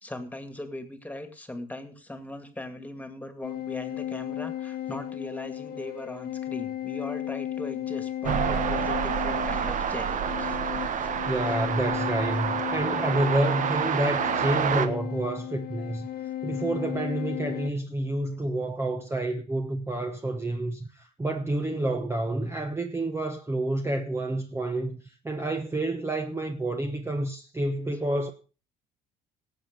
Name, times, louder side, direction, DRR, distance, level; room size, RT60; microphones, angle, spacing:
voice 1, 0.0-11.2, left 1 dB, 10° left, 2.2 m, -39 dB
sound 1, 3.4-17.7, left 12 dB, 65° left, 1.4 m, -35 dB
sound 2, 8.2-14.9, right 7 dB, 50° right, 1.3 m, -28 dB
voice 2, 11.2-16.1 16.4-28.3, right 1 dB, 15° right, 1.1 m, -29 dB
18.0 x 7.5 x 5.3 m
cardioid pair, 110°, 17 cm